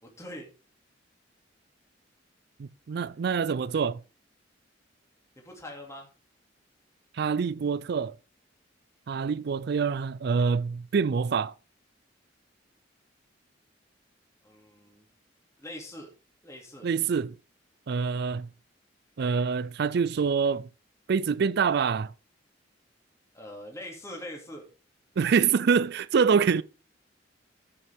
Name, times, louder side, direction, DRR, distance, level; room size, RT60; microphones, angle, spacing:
voice 1, 0.0-0.5 5.4-6.1 14.4-15.0 15.6-16.1 16.4-16.9 23.3-24.7 26.3-26.4, left 1 dB, 15° left, 2.6 m, -43 dB
voice 2, 2.6-4.0 7.1-8.2 9.1-11.5 16.8-17.4 17.9-18.5 19.2-20.7 21.1-22.1 25.2-26.6, right 6 dB, 60° right, 0.4 m, -25 dB
14.0 x 6.9 x 3.5 m
head